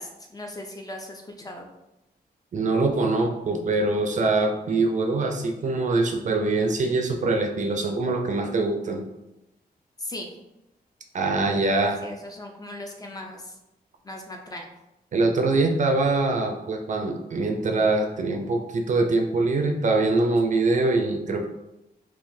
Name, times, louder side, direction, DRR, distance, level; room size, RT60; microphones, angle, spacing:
voice 1, 0.0-1.7 10.0-10.3 12.0-13.5 14.0-14.7, left 1 dB, 25° left, 2 dB, 0.4 m, -38 dB
voice 2, 2.5-9.0 11.1-12.0 15.1-21.4, right 3 dB, 50° right, 4 dB, 0.4 m, -23 dB
3.8 x 2.6 x 2.6 m, 0.91 s
wide cardioid pair, 165°, 17 cm